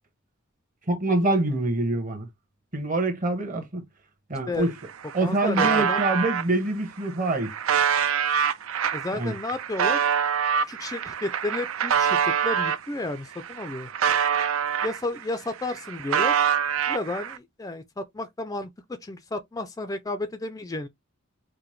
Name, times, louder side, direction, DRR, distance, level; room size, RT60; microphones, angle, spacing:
voice 1, 0.9-2.3 2.7-3.9 4.3-4.7 5.1-7.5 9.1-9.3, right 2 dB, 40° right, 1.1 m, -25 dB
sound 1, 4.5-4.6 4.9-6.4 7.1-12.8 13.3-15.2 15.5-17.4, right 7 dB, 75° right, 0.5 m, -25 dB
voice 2, 5.2-6.0 8.9-10.0 10.7-13.9 14.8-16.3 16.9-18.7 19.0-20.9, left 2 dB, 15° left, 0.4 m, -32 dB
4.8 x 2.1 x 3.1 m
head